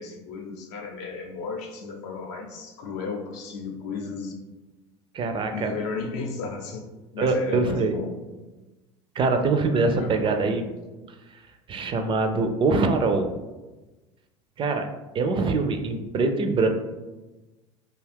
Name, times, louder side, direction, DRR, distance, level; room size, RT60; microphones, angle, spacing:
voice 1, 0.0-4.4 5.5-6.9 7.1-8.1 10.0-10.6, left 4 dB, 70° left, 2 dB, 0.6 m, -34 dB
voice 2, 5.1-5.7 7.2-7.9 9.2-10.6 11.7-13.3 14.6-14.9 15.1-16.7, right 3 dB, 35° right, 6 dB, 0.4 m, -23 dB
2.6 x 2.3 x 3.4 m, 1.1 s
hypercardioid pair, 75°, 16 cm